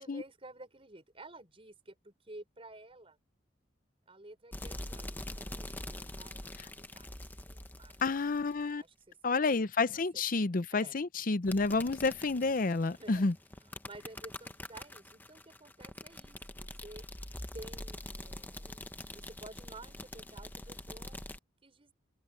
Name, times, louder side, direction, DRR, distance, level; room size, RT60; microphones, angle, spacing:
voice 1, 0.0-3.2 4.1-7.1 7.5-8.2 8.8-9.6 9.9-11.0 12.9-13.3 13.6-17.0 17.5-21.2 21.6-21.9, right 2 dB, 30° right, 5.9 m, -52 dB
sound 1, 4.5-8.7 11.4-21.4, left 1 dB, 10° left, 1.0 m, -45 dB
voice 2, 8.0-8.8 9.2-13.3, left 3 dB, 45° left, 0.7 m, -30 dB
head